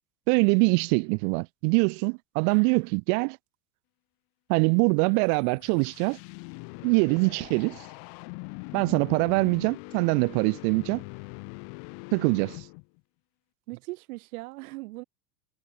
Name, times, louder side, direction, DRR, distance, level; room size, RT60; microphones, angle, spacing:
voice 1, 0.3-3.4 4.5-6.2 6.8-7.8 8.7-11.0 12.1-12.6, right 40 dB or more, 45° right, 0.5 m, -24 dB
voice 2, 2.5-2.9 13.7-15.0, right 22 dB, 60° right, 0.8 m, -39 dB
sound 1, 5.2-13.0, left 38 dB, 55° left, 2.7 m, -42 dB
hypercardioid pair, 95°, 48 cm